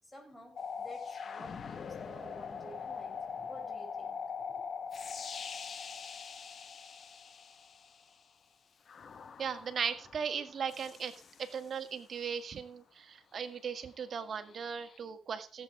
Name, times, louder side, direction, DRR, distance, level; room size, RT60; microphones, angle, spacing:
voice 1, 0.0-4.6, equal, 10° left, 5.2 m, -52 dB
sound 1, 0.6-8.1 8.9-11.9 14.5-15.0, left 6 dB, 50° left, 0.9 m, -43 dB
voice 2, 9.4-11.1 11.4-15.6, right 6 dB, 50° right, 1.7 m, -37 dB
16.0 x 7.9 x 4.6 m
cardioid pair, 90°, 0 cm